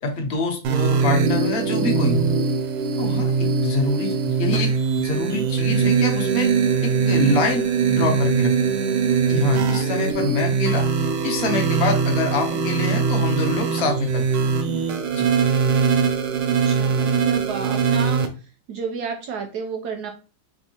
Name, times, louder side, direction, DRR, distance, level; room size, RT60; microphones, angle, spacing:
voice 1, 0.0-2.3 3.0-6.5 6.8-8.5 9.3-10.8 11.2-14.2 15.1-15.2, left 2 dB, 65° left, 2 dB, 0.6 m, -26 dB
sound 1, 0.6-18.3, right 5 dB, 90° right, 1.4 m, -21 dB
voice 2, 16.5-18.2 18.7-20.1, right 5 dB, 75° right, 4 dB, 0.9 m, -31 dB
3.5 x 3.4 x 2.8 m, 0.33 s
omnidirectional pair, 2.2 m